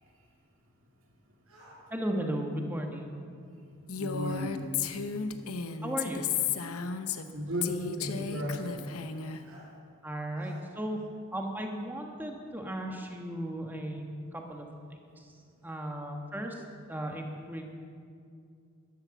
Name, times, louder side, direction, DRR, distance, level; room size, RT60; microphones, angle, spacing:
sound 1, 1.5-1.8 4.2-4.5 5.8-5.9 7.4-7.7 9.4-9.7 10.4-10.6, right 1 dB, 80° right, 4.8 m, -55 dB
voice 1, 1.9-3.2 5.8-6.2 10.0-11.0 11.3-14.0 14.3-14.7 15.2-15.3 15.6-16.6 16.9-17.7, right 1 dB, 10° right, 2 dB, 1.4 m, -35 dB
Female speech woman speaking, 3.9-7.3 7.6-9.4, left 6 dB, 85° left, 0.8 m, -33 dB
voice 2, 4.0-4.7 7.3-8.8, left 1 dB, 60° right, 0 dB, 2.6 m, -34 dB
12.5 x 12.5 x 7.1 m, 2.4 s
head